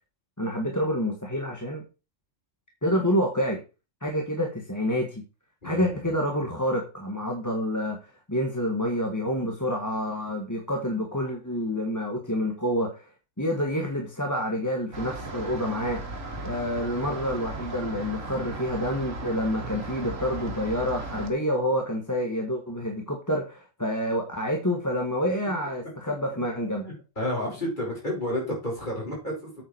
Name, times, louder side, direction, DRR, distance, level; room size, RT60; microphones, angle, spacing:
voice 1, 0.4-1.8 2.8-3.6 4.0-5.2 5.6-8.0 8.3-13.1 13.4-16.0 16.4-26.9, equal, 15° left, 1 dB, 1.8 m, -28 dB
voice 2, 5.6-6.0 26.8-29.6, left 1 dB, 35° left, -3 dB, 6.0 m, -31 dB
sound 1, 14.9-21.3, right 3 dB, 85° right, 2.3 m, -36 dB
9.0 x 8.2 x 4.6 m, 0.31 s
omnidirectional pair, 1.3 m